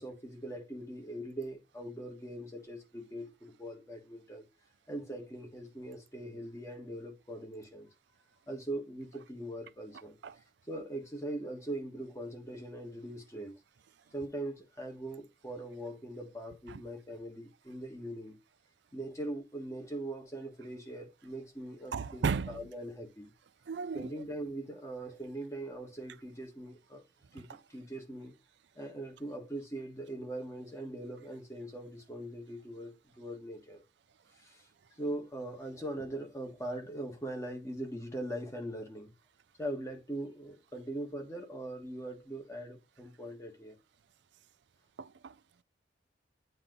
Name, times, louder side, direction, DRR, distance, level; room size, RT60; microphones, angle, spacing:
voice 1, 0.0-4.5 4.9-7.9 8.5-10.2 10.7-13.5 14.1-18.4 18.9-23.3 23.9-27.0 27.3-28.3 28.7-33.8 34.4-34.7 35.0-39.1 39.6-43.8, right 1 dB, 15° left, 1.5 m, -41 dB
voice 2, 21.9-22.5 23.7-24.1 45.0-45.3, right 5 dB, 75° right, 0.4 m, -34 dB
8.7 x 3.0 x 3.8 m
head